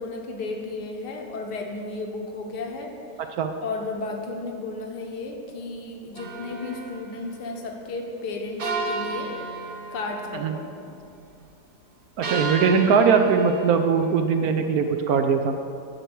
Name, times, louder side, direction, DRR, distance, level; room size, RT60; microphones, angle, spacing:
voice 1, 0.0-3.3 3.6-9.3 9.9-11.0, left 3 dB, 75° left, 2 dB, 1.6 m, -34 dB
sound 1, 6.2-7.1 8.6-10.4 12.2-13.9, right 3 dB, 50° right, 0.7 m, -32 dB
voice 2, 12.2-15.5, right 6 dB, 70° right, 6 dB, 0.9 m, -20 dB
10.0 x 4.6 x 7.9 m, 2.6 s
omnidirectional pair, 1.8 m